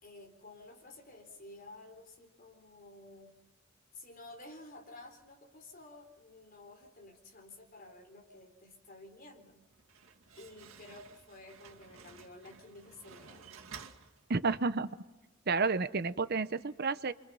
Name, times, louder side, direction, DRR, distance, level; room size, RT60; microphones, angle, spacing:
voice 1, 0.0-3.3 3.9-9.6 10.4-13.5, left 2 dB, 45° left, 3 dB, 4.2 m, -52 dB
Slam, 9.7-14.8, right 6 dB, 85° right, 2.2 m, -53 dB
voice 2, 14.3-14.9 15.5-17.1, right 4 dB, 50° right, 12 dB, 0.8 m, -31 dB
29.0 x 25.0 x 5.5 m, 1.1 s
head